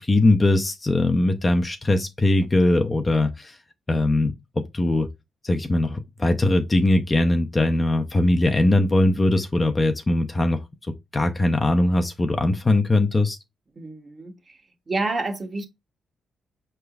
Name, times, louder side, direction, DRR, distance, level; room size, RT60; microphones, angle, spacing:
voice 1, 0.0-3.6 3.9-5.1 5.4-10.6 11.1-13.4, left 2 dB, 20° left, 0.4 m, -21 dB
voice 2, 13.8-14.6 14.9-15.7, right 2 dB, 25° right, 0.8 m, -29 dB
5.8 x 3.2 x 2.3 m
wide cardioid pair, 155°, 0 cm